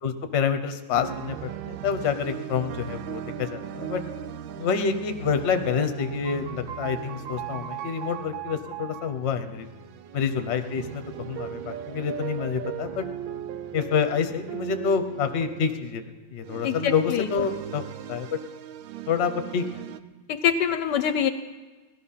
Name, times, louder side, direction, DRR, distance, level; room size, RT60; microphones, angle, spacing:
voice 1, 0.0-4.0 4.6-9.7 10.1-13.0 13.7-16.0 16.3-17.8 18.1-18.4 19.1-19.8, left 6 dB, 45° left, 8 dB, 0.9 m, -27 dB
sound 1, 0.9-20.0, right 10 dB, 90° right, 1.4 m, -38 dB
voice 2, 16.6-17.3 20.3-21.3, left 8 dB, 75° left, 11 dB, 1.2 m, -24 dB
17.5 x 12.5 x 5.7 m, 1.3 s
omnidirectional pair, 2.0 m